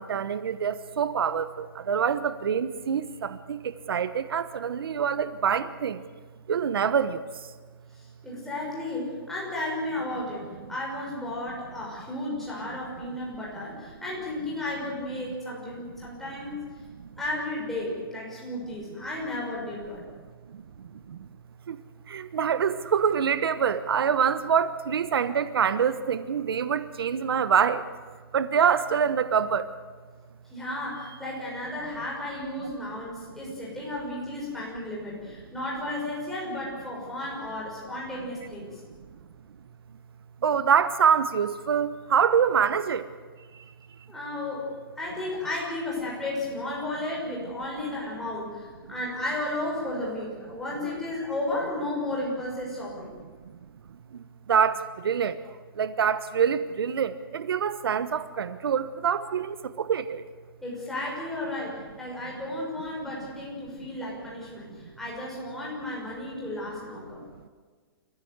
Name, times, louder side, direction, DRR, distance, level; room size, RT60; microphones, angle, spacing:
voice 1, 0.0-6.0 6.5-7.5 16.0-16.1 17.0-17.1 20.5-21.3 21.7-27.8 28.3-29.7 40.4-43.1 43.5-43.6 54.1-55.4 55.7-60.2, right 7 dB, 75° right, 13 dB, 1.1 m, -26 dB
voice 2, 7.9-16.6 17.2-20.0 30.5-38.7 44.1-44.7 45.0-53.2 60.6-64.7 65.0-67.2, left 1 dB, ahead, -6 dB, 6.2 m, -33 dB
29.5 x 14.5 x 8.1 m, 1.5 s
hypercardioid pair, 170°, 12 cm